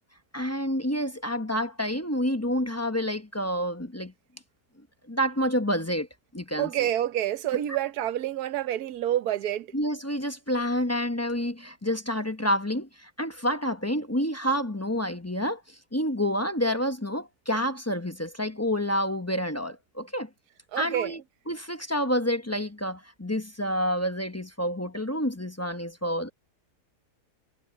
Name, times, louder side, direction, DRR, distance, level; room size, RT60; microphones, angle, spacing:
voice 1, 0.3-4.1 5.1-6.1 6.3-6.7 9.7-20.3 20.8-21.2 21.5-26.3, equal, 15° left, 0.7 m, -28 dB
voice 2, 6.5-9.7 20.7-21.2, right 12 dB, 65° right, 1.4 m, -28 dB
omnidirectional pair, 1.8 m